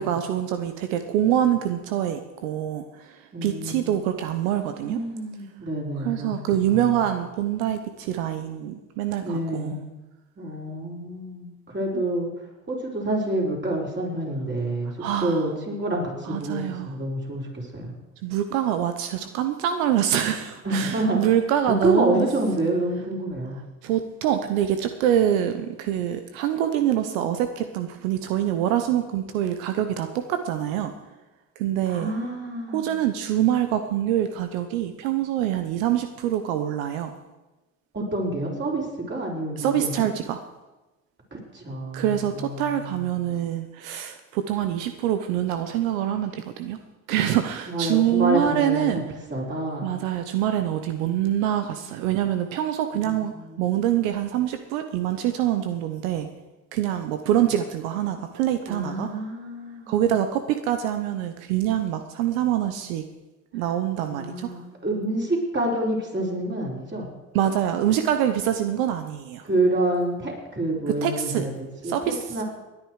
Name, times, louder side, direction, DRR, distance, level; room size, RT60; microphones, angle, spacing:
voice 1, 0.0-5.0 6.0-9.8 11.9-12.0 15.0-15.5 16.2-16.9 18.2-22.3 23.8-30.9 31.6-32.1 32.7-37.1 39.6-40.4 41.9-46.8 47.1-49.0 49.8-53.3 53.6-56.3 56.7-59.1 59.9-63.0 63.5-64.5 67.3-69.5 71.0-71.4 71.8-72.2, right 11 dB, 85° right, 8 dB, 1.0 m, -25 dB
voice 2, 3.3-4.0 4.8-6.3 6.7-6.9 9.2-9.9 10.4-12.3 12.7-17.9 20.6-21.2 21.7-23.6 31.9-33.0 37.9-40.1 41.3-43.1 47.7-49.0 49.3-49.9 51.8-51.9 52.9-53.8 58.7-60.1 63.6-63.7 64.1-67.1 69.4-72.4, right 1 dB, 30° right, -2 dB, 5.2 m, -28 dB
19.0 x 9.8 x 4.9 m, 1.1 s
supercardioid pair, 70°, 40 cm